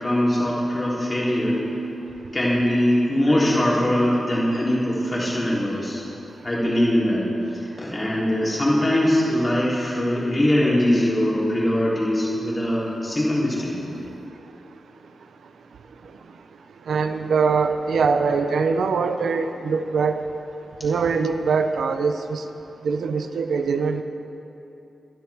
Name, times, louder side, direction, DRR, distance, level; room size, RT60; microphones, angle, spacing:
voice 1, 0.0-1.6 2.3-6.0 6.4-7.2 7.5-13.8, left 1 dB, 25° left, -6 dB, 3.6 m, -22 dB
voice 2, 16.9-20.2 20.8-22.4 22.8-24.0, right 5 dB, 85° right, 7 dB, 0.7 m, -22 dB
23.0 x 11.5 x 3.6 m, 2.9 s
wide cardioid pair, 135°, 0 cm